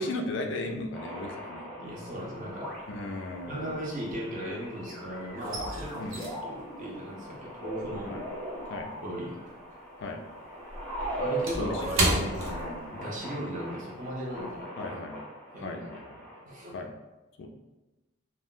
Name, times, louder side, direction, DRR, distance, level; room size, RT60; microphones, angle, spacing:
voice 1, 0.0-1.6 2.9-3.7 5.9-6.4 8.1-8.2 8.7-8.9 10.0-10.2 11.5-12.9 14.8-15.2 15.6-16.0 16.7-16.9 17.4-17.5, left 2 dB, 60° left, 4 dB, 0.3 m, -36 dB
sound 1, 0.9-16.4, right 1 dB, 5° left, 0.6 m, -40 dB
voice 2, 1.8-2.7 3.4-6.1 6.4-8.2 9.0-9.4 11.2-12.3 12.9-14.9 15.5-15.8 16.4-16.8, equal, 40° right, -3 dB, 0.6 m, -37 dB
sound 2, 1.9-2.5 2.8-4.8 5.0-9.7 10.0-13.3 13.6-13.8 14.3-14.5, right 1 dB, 75° right, 0.7 m, -34 dB
2.3 x 2.0 x 3.7 m, 1.1 s
head